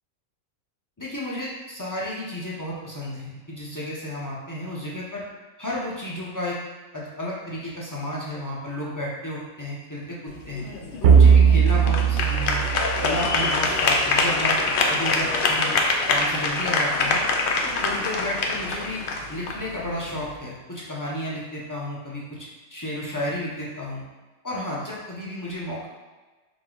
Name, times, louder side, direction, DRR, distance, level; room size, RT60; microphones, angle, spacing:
voice 1, 1.0-5.2 5.6-6.6 6.9-10.6 11.0-12.6 13.0-14.6 14.9-15.8 16.1-17.2 17.6-19.0 19.3-24.0 24.4-25.9, left 1 dB, 20° left, -6 dB, 0.6 m, -32 dB
sound 1, 10.3-20.4, left 3 dB, 65° left, 0.5 m, -25 dB
sound 2, 11.0-13.7, right 7 dB, 70° right, 0.9 m, -17 dB
5.0 x 2.2 x 3.8 m, 1.2 s
omnidirectional pair, 1.4 m